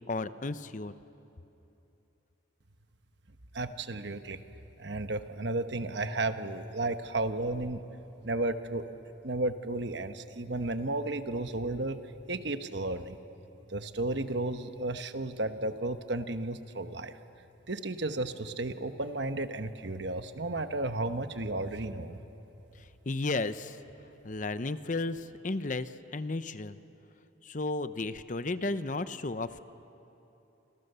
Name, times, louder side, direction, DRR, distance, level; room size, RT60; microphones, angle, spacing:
voice 1, 0.1-0.9 23.1-23.8 24.2-26.8 27.4-29.6, left 2 dB, 40° left, 12 dB, 0.7 m, -33 dB
voice 2, 3.5-4.4 4.8-7.9 8.2-9.0 9.2-12.0 12.3-13.2 13.7-17.1 17.7-22.2, right 2 dB, 65° right, 9 dB, 1.2 m, -33 dB
29.0 x 27.5 x 6.9 m, 3.0 s
head